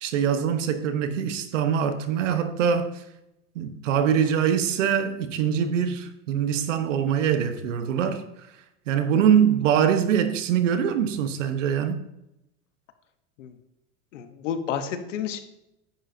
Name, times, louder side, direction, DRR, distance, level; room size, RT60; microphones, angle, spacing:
voice 1, 0.0-3.0 3.5-8.2 8.9-12.0, right 8 dB, 90° right, 1.2 m, -23 dB
voice 2, 14.1-15.4, left 8 dB, 90° left, 1.2 m, -30 dB
10.5 x 8.6 x 2.8 m
supercardioid pair, 110°, 36 cm